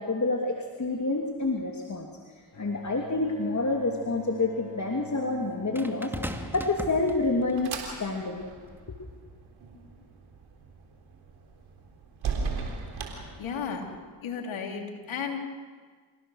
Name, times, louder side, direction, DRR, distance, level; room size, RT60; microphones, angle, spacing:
voice 1, 0.0-2.1 2.6-6.1 6.5-8.4, left 3 dB, 35° left, 2 dB, 2.8 m, -28 dB
Bowed string instrument, 2.5-7.5, equal, 65° left, 5.6 m, -45 dB
sound 1, 2.8-2.9 5.7-7.6 8.6-8.8, equal, 5° right, 2.4 m, -38 dB
sound 2, 7.0-14.0, right 5 dB, 80° right, 3.8 m, -38 dB
voice 2, 13.4-13.9 14.2-15.4, left 6 dB, 80° left, 2 dB, 3.3 m, -33 dB
28.5 x 17.5 x 6.5 m, 1.5 s
supercardioid pair, 45°, 47 cm